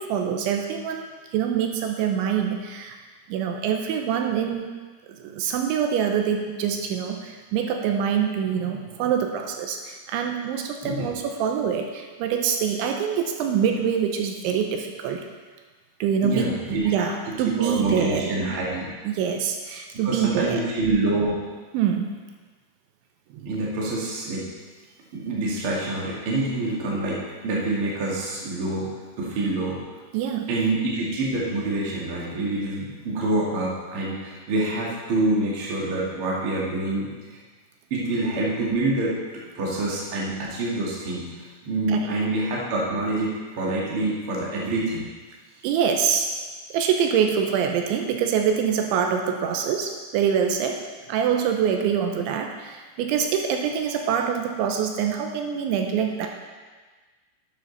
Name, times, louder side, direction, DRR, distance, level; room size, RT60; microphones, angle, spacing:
voice 1, 0.0-3.0 3.3-4.7 5.1-15.2 16.0-18.3 19.0-20.6 21.7-22.1 23.3-23.5 30.1-30.5 41.9-42.0 45.6-46.3 46.7-50.8 51.1-56.3, right 7 dB, 85° right, 3 dB, 3.1 m, -25 dB
voice 2, 16.2-17.1 17.4-18.9 20.0-21.4 23.4-24.5 25.1-28.9 29.2-29.8 30.5-37.1 37.9-45.1, right 2 dB, 50° right, -5 dB, 1.6 m, -26 dB
11.5 x 9.2 x 4.0 m, 1.4 s
omnidirectional pair, 5.5 m